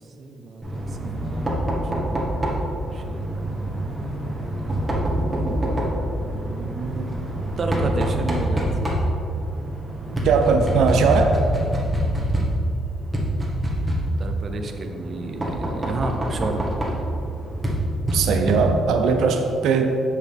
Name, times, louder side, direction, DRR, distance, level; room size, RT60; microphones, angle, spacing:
voice 1, 0.2-1.8 2.5-4.1 5.1-7.1 7.6-8.9 14.2-16.7, right 3 dB, 45° right, 5 dB, 0.8 m, -32 dB
Knock, 0.6-19.0, right 1 dB, 15° right, 1.4 m, -26 dB
voice 2, 10.2-11.4 18.1-20.0, right 5 dB, 80° right, 5 dB, 0.6 m, -19 dB
8.3 x 6.1 x 3.6 m, 2.6 s
cardioid pair, 105°, 0 cm